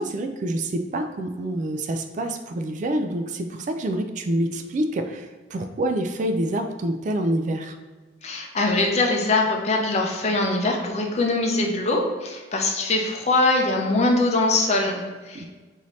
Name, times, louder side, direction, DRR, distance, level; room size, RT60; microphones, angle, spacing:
voice 1, 0.0-7.8 15.3-15.4, right 1 dB, 45° right, 7 dB, 0.3 m, -27 dB
voice 2, 8.2-15.4, left 2 dB, 35° left, 1 dB, 0.6 m, -22 dB
5.3 x 2.7 x 3.1 m, 1.3 s
head